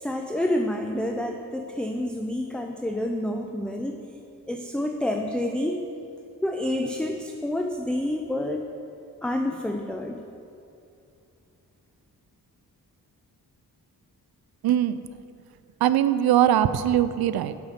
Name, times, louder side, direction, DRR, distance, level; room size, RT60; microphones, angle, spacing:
voice 1, 0.0-4.0 4.5-5.8 6.4-8.6 9.2-10.2, left 1 dB, 5° left, 3 dB, 0.5 m, -28 dB
voice 2, 14.6-15.0 15.8-17.5, right 11 dB, 75° right, 13 dB, 0.5 m, -21 dB
7.3 x 5.7 x 6.5 m, 2.6 s
cardioid pair, 50°, 38 cm